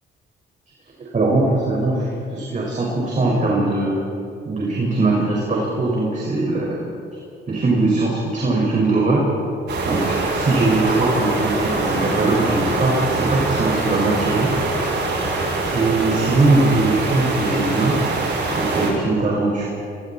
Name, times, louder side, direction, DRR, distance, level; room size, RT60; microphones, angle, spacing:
voice 1, 1.0-4.0 4.5-6.8 7.5-9.2 9.9-14.5 15.7-18.0 18.5-19.7, right 2 dB, 40° right, -4 dB, 5.6 m, -20 dB
sound 1, 9.7-18.9, right 3 dB, 60° right, 7.1 m, -23 dB
28.5 x 24.0 x 4.4 m, 2.7 s
cardioid pair, 90°, 20 cm